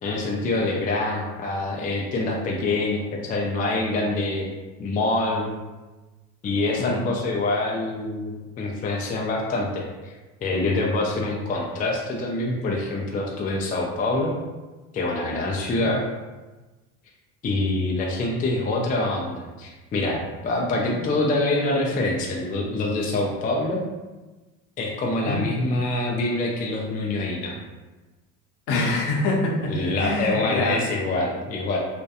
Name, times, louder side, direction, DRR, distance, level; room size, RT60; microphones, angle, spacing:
voice 1, 0.0-4.5 4.8-5.5 6.4-10.1 10.4-14.3 14.9-16.0 17.4-23.8 24.8-27.6 29.7-31.8, left 2 dB, 25° left, -2 dB, 0.3 m, -25 dB
voice 2, 28.7-30.8, left 2 dB, 60° left, -1 dB, 0.7 m, -25 dB
2.7 x 2.2 x 2.3 m, 1.2 s
supercardioid pair, 90°, 38 cm